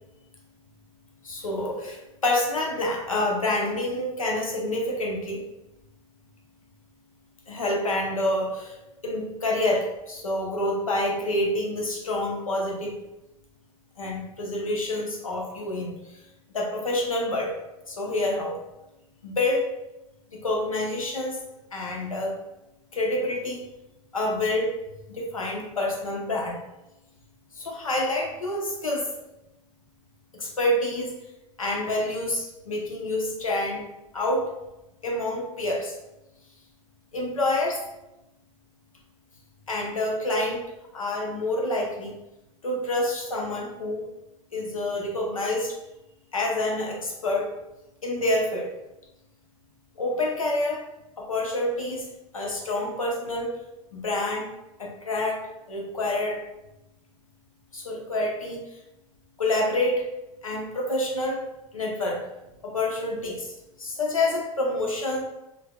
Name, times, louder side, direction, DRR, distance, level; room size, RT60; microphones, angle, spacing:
voice 1, 1.2-5.4 7.5-8.8 9.0-13.0 14.0-16.2 16.5-17.5 17.9-18.6 19.2-19.7 20.3-21.4 21.7-22.3 22.9-23.6 24.1-24.7 25.1-26.6 27.6-29.1 30.3-31.1 31.6-33.9 34.1-34.5 35.0-36.0 37.1-37.8 39.7-40.6 40.9-42.1 42.6-44.1 44.5-45.8 46.3-47.5 48.0-48.7 50.0-50.8 51.2-52.1 52.3-53.6 53.9-54.5 54.8-55.4 55.7-56.4 57.7-58.6 59.4-60.1 60.4-61.4 61.7-62.2 62.6-63.5 63.8-65.2, left 1 dB, 85° left, -1 dB, 0.8 m, -27 dB
4.9 x 2.8 x 2.2 m, 0.94 s
figure-of-eight pair, 80°, 17 cm